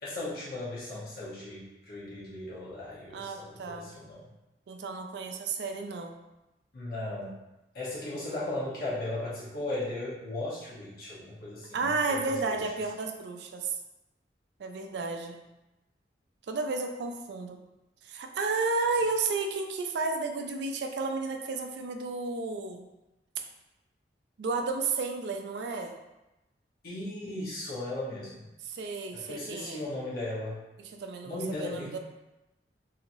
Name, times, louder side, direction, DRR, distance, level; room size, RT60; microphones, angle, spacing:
voice 1, 0.0-4.3 6.7-7.3 7.7-12.7 26.8-28.4 29.1-30.6 31.2-32.0, left 2 dB, 55° left, -8 dB, 0.9 m, -37 dB
voice 2, 3.1-3.9 4.7-6.2 11.7-13.8 14.6-15.4 16.5-17.6 18.0-22.9 24.4-25.9 28.6-29.8 30.8-32.0, right 4 dB, 65° right, 5 dB, 0.3 m, -32 dB
3.0 x 2.7 x 2.6 m, 0.99 s
head